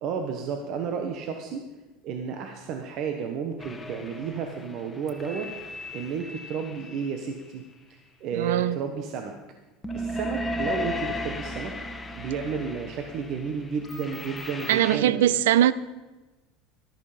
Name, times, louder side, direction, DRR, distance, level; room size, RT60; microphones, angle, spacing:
voice 1, 0.0-1.6 2.0-5.5 5.9-7.6 7.9-9.3 9.9-11.7 12.2-15.3, right 6 dB, 55° right, 5 dB, 1.3 m, -32 dB
sound 1, 3.6-7.2 9.8-15.0, left 1 dB, 15° left, 1.3 m, -35 dB
voice 2, 8.3-8.8 14.7-15.7, right 12 dB, 85° right, 18 dB, 0.5 m, -21 dB
13.5 x 12.0 x 5.1 m, 1.2 s
supercardioid pair, 105°, 0 cm